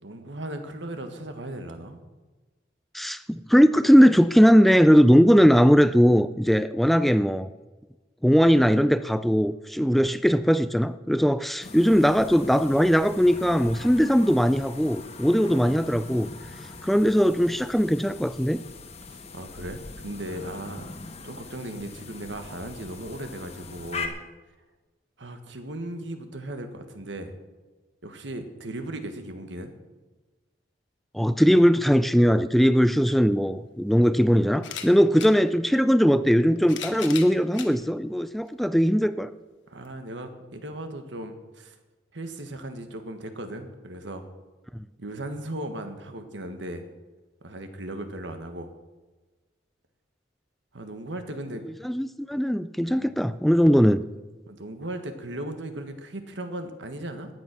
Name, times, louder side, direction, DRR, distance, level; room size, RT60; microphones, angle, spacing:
voice 1, 0.0-2.0 15.4-15.5 19.0-20.9 21.2-24.2 25.2-27.3 28.0-29.7 39.7-41.7 42.1-44.2 45.0-46.8 47.4-48.7 50.7-51.6 52.9-53.1 54.5-57.3, right 1 dB, 85° right, 7 dB, 1.5 m, -37 dB
voice 2, 2.9-7.5 8.2-16.3 16.8-18.6 31.1-39.3 44.7-44.9 51.8-54.0, equal, ahead, 13 dB, 0.3 m, -20 dB
sound 1, 11.6-24.1, left 4 dB, 35° left, 1.4 m, -41 dB
sound 2, 33.1-33.2 34.5-35.3 36.3-37.7 38.5-38.6 39.8-39.9, left 8 dB, 85° left, 1.3 m, -37 dB
13.5 x 9.6 x 6.1 m, 1.2 s
head